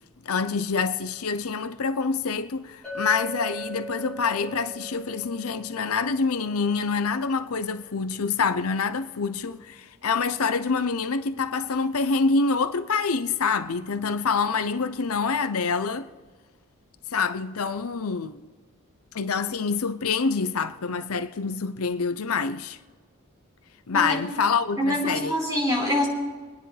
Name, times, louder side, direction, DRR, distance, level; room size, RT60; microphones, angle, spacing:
voice 1, 0.2-16.1 17.1-18.4 19.1-22.8 23.9-25.3, left 5 dB, 80° left, 0.7 m, -26 dB
Chink clink, 2.8-7.0, right 1 dB, 5° left, 5.4 m, -39 dB
voice 2, 23.9-24.2 24.8-26.1, left 1 dB, 15° right, 4.6 m, -25 dB
24.5 x 10.0 x 3.4 m
head